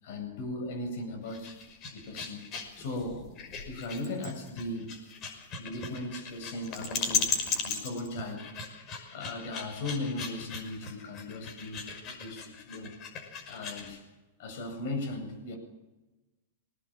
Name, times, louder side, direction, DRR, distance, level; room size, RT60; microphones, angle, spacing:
voice 1, 0.0-1.5 1.9-2.4 2.8-5.0 5.6-8.5 9.1-12.9 13.5-14.0 14.4-15.6, left 2 dB, 60° left, 4 dB, 7.7 m, -37 dB
sound 1, 1.2-13.9, left 5 dB, 35° left, 5.8 m, -37 dB
21.5 x 18.5 x 7.5 m, 1.1 s
hypercardioid pair, 115°, 0 cm